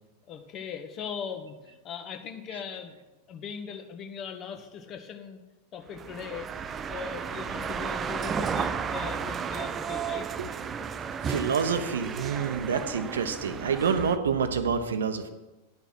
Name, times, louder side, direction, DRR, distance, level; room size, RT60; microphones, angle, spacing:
voice 1, 0.3-3.0 3.3-5.4 5.7-6.5 6.9-10.3 10.8-10.9, left 7 dB, 35° left, 5 dB, 1.2 m, -39 dB
sound 1, 5.9-14.2, right 6 dB, 25° right, 0.5 m, -33 dB
voice 2, 11.2-15.3, right 6 dB, 65° right, 9 dB, 0.9 m, -27 dB
11.0 x 5.8 x 6.0 m, 1.0 s
figure-of-eight pair, 90°, 0 cm